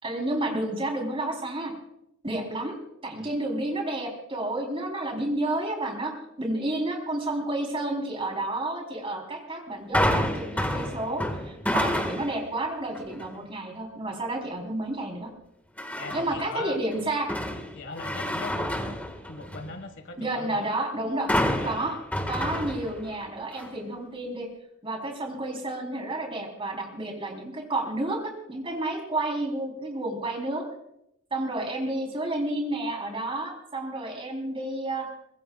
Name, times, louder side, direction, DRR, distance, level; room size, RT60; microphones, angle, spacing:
voice 1, 0.0-1.7 2.2-2.8 3.0-15.3 16.1-17.3 20.2-21.3 21.6-21.9 22.3-24.5 24.8-30.6 31.3-35.1, right 1 dB, 25° right, 1 dB, 3.8 m, -30 dB
sound 1, 9.9-12.5 12.9-13.3 15.8-16.5 16.9-19.8 21.3-23.2 23.6-23.7, left 1 dB, 5° left, 1.7 m, -29 dB
voice 2, 16.0-16.8 17.7-19.0 19.2-20.6 21.5-22.0 22.4-22.6, left 3 dB, 60° left, 8 dB, 1.7 m, -40 dB
23.5 x 20.0 x 2.4 m, 0.78 s
head